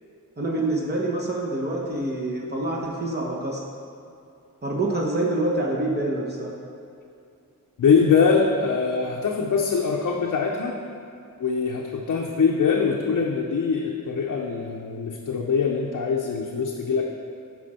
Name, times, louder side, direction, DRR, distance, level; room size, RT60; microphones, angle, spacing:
voice 1, 0.4-3.6 4.6-6.5, right 2 dB, 30° right, -3 dB, 1.1 m, -26 dB
voice 2, 7.8-10.8 11.4-17.0, left 5 dB, 60° left, -1 dB, 0.7 m, -23 dB
8.1 x 5.0 x 4.3 m, 2.5 s
cardioid pair, 70°, 34 cm